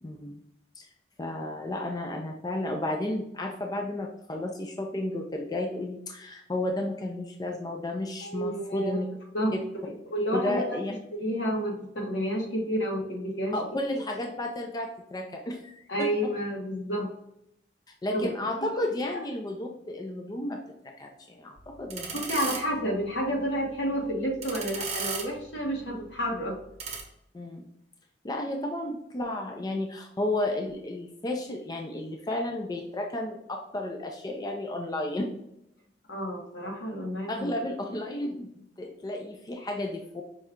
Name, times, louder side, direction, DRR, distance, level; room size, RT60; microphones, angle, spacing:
voice 1, 0.0-0.4 0.8-0.9 1.2-9.1 10.3-10.9 13.5-16.3 18.0-20.6 21.0-22.2 27.3-27.6 28.2-35.3 37.3-40.2, left 1 dB, 20° left, 3 dB, 0.4 m, -32 dB
voice 2, 8.2-9.0 9.3-9.5 9.8-10.8 11.1-13.6 15.9-17.2 18.1-18.3 18.6-18.7 19.1-19.2 22.1-26.6 36.1-37.5, equal, 80° left, -1 dB, 1.2 m, -30 dB
sound 1, 21.6-27.0, right 5 dB, 35° right, 0.9 m, -38 dB
5.3 x 2.3 x 3.6 m, 0.79 s
head